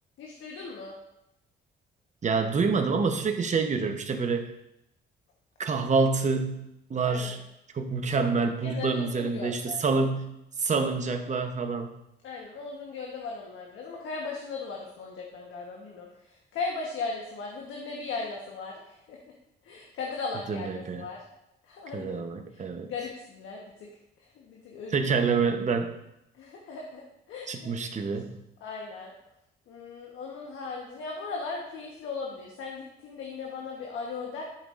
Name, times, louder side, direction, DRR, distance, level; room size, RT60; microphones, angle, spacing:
voice 1, 0.2-0.9 7.0-7.4 8.6-9.8 12.2-19.2 19.6-21.2 21.6-22.2 22.5-23.9 24.2-25.2 26.3-27.0 27.3-27.7 28.6-29.1 29.7-34.4, left 4 dB, 80° left, -1 dB, 1.2 m, -38 dB
voice 2, 2.2-4.5 5.6-6.6 6.9-7.4 7.7-10.3 10.6-11.9 20.5-21.0 21.9-22.9 24.9-25.9 27.5-28.4, right 4 dB, 35° right, 5 dB, 0.9 m, -27 dB
12.0 x 5.4 x 2.5 m, 0.84 s
cardioid pair, 90°, 20 cm